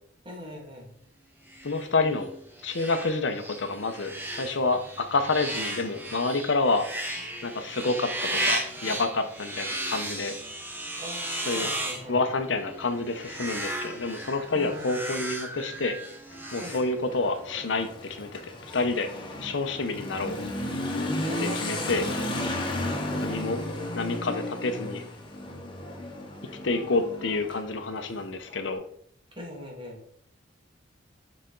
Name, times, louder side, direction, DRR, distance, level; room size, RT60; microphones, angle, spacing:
voice 1, 0.2-1.0 11.0-12.2 14.5-15.0 16.6-16.8 21.2-23.5 29.3-30.0, equal, 25° right, -1 dB, 1.8 m, -41 dB
sound 1, 1.5-17.4, right 1 dB, 10° right, 1.0 m, -35 dB
voice 2, 1.6-2.3 2.6-6.9 7.4-10.4 11.5-11.7 12.1-16.0 16.5-19.1 19.4-20.4 21.4-22.0 23.2-23.7 23.9-25.0 26.6-28.8, left 3 dB, 70° left, 8 dB, 0.7 m, -28 dB
Motorcycle / Accelerating revving vroom, 16.3-28.6, left 1 dB, 25° left, 1.1 m, -34 dB
6.6 x 4.2 x 3.8 m, 0.65 s
head